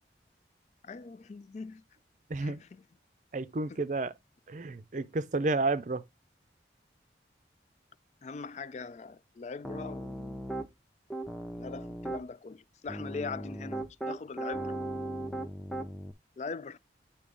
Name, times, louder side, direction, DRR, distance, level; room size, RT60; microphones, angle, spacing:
voice 1, 0.8-1.8 2.4-2.8 8.2-10.4 11.5-14.8 16.4-16.8, left 4 dB, 40° left, 0.3 m, -41 dB
voice 2, 2.3-2.6 3.3-4.1 4.5-6.0, right 3 dB, 45° right, 0.5 m, -31 dB
Piano, 9.6-10.7 11.1-12.2 12.9-16.1, right 1 dB, ahead, 0.6 m, -37 dB
8.3 x 2.8 x 5.3 m
head